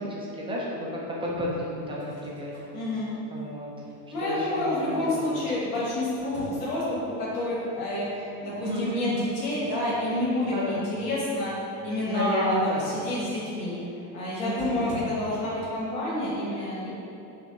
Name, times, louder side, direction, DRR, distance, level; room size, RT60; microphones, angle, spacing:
voice 1, 0.0-2.5 3.3-3.7 4.2-4.9 5.2-5.4 8.6-9.3 10.5-10.8 12.1-13.0 14.4-14.9, equal, 10° right, -5 dB, 0.4 m, -31 dB
sound 1, 1.8-2.7 5.4-6.9 9.0-9.7 10.0-10.2 14.0-14.1 14.6-15.1, right 1 dB, 30° right, 0.9 m, -45 dB
voice 2, 2.7-3.1 4.1-8.1 8.4-11.5 11.8-13.8 14.1-16.9, left 1 dB, 70° left, -8 dB, 1.4 m, -28 dB
6.1 x 2.4 x 2.7 m, 2.8 s
supercardioid pair, 130°, 45 cm